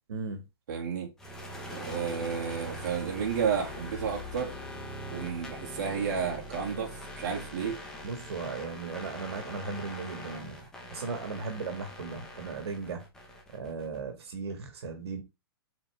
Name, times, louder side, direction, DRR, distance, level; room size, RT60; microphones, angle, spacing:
voice 1, 0.7-1.1 1.7-4.6 5.1-7.8, right 7 dB, 45° right, 2.2 m, -32 dB
sound 1, 1.2-14.0, equal, 5° left, 0.9 m, -42 dB
voice 2, 8.0-10.6 10.9-13.0 13.5-15.2, right 4 dB, 80° right, 1.7 m, -37 dB
6.7 x 4.4 x 3.4 m
hypercardioid pair, 175°, 13 cm